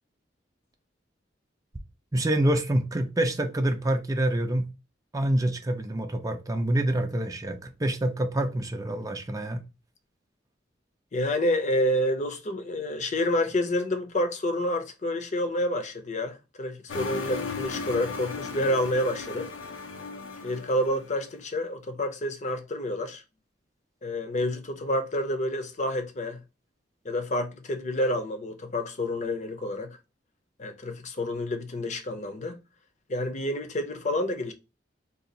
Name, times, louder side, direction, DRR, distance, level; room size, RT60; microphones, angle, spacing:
voice 1, 2.1-4.7 5.1-9.6, right 1 dB, 20° right, 0.4 m, -26 dB
voice 2, 11.1-19.5 20.4-23.2 24.0-26.4 27.0-30.0 30.6-32.6 33.1-34.5, left 1 dB, 40° left, 0.6 m, -28 dB
sound 1, 16.9-21.3, left 4 dB, 80° left, 0.7 m, -36 dB
2.7 x 2.4 x 3.9 m
head